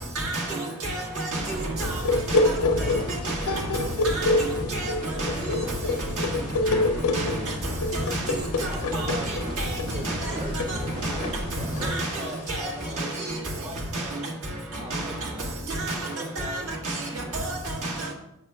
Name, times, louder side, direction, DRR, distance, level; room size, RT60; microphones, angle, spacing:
voice 1, 0.1-1.9 2.3-2.4 3.2-3.3 4.0-4.3 4.7-4.9 5.2-5.3 6.2-6.3 6.7-6.8 7.1-7.3 8.1-8.2 8.6-9.2 9.6-9.7 10.0-10.1 10.7-10.8 11.0-11.1 11.8-12.1 12.5-12.7 13.0-13.1 14.9-15.0 15.8-15.9 16.5-16.6 16.8-16.9 17.3-17.5 17.8-17.9, right 2 dB, 70° right, 1.7 m, -29 dB
sound 1, 1.3-11.9, equal, 85° right, 1.8 m, -34 dB
sound 2, 1.8-12.9, left 2 dB, 85° left, 0.5 m, -28 dB
voice 2, 2.3-3.6 5.2-6.0 6.6-6.8 7.6-8.0, left 2 dB, 20° left, 0.4 m, -41 dB
voice 3, 8.6-14.2 14.7-16.7, equal, 30° right, 1.0 m, -41 dB
8.2 x 7.1 x 2.3 m
head